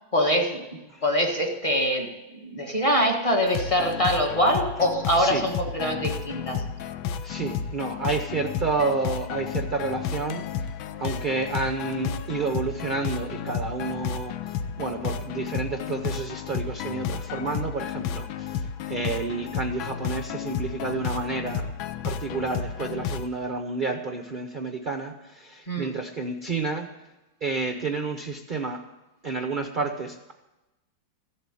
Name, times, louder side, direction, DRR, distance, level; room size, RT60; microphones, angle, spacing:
voice 1, 0.1-0.6 1.0-6.6 25.7-25.9, equal, 20° left, 1 dB, 1.5 m, -24 dB
sound 1, 3.5-23.3, left 7 dB, 85° left, 1.5 m, -32 dB
voice 2, 7.2-10.7 11.0-21.7 22.0-26.9 27.4-28.8 29.2-30.3, right 4 dB, 55° right, 5 dB, 0.5 m, -30 dB
14.5 x 7.9 x 9.8 m, 1.0 s
omnidirectional pair, 2.1 m